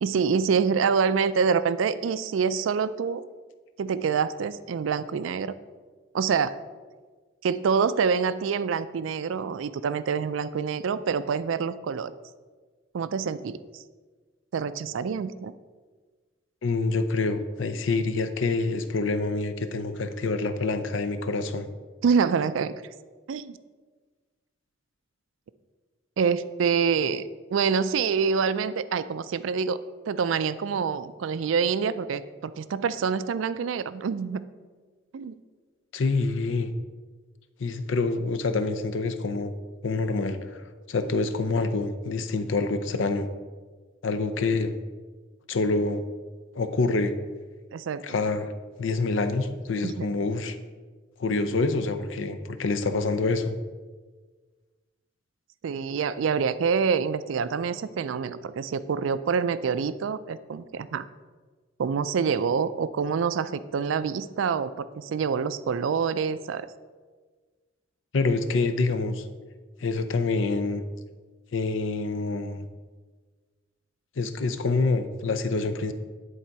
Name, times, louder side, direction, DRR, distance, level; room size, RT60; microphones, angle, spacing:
voice 1, 0.0-3.2 3.8-5.6 6.1-6.6 7.4-12.1 12.9-13.8 14.5-15.5 22.0-22.7 23.3-23.6 26.2-29.8 30.1-34.4 35.1-35.3 47.7-48.0 49.8-50.1 55.6-61.0 61.8-66.7, right 6 dB, 80° right, 14 dB, 0.4 m, -26 dB
voice 2, 16.6-21.7 35.9-36.7 37.6-39.5 39.8-43.3 44.0-44.7 45.5-46.0 46.5-47.1 48.0-48.5 48.8-50.6 51.2-53.6 68.1-69.3 69.8-70.8 71.5-72.7 74.2-75.9, left 3 dB, 75° left, 10 dB, 0.6 m, -26 dB
10.0 x 4.1 x 4.6 m, 1.4 s
head